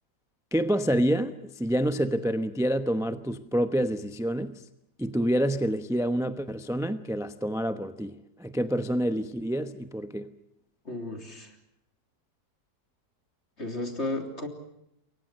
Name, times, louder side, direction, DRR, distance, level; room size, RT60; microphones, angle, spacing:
voice 1, 0.5-4.6 5.0-10.3, equal, 5° right, 0.6 m, -27 dB
voice 2, 10.9-11.6 13.6-14.5, left 2 dB, 40° left, 3.7 m, -33 dB
28.5 x 23.0 x 6.4 m
omnidirectional pair, 1.8 m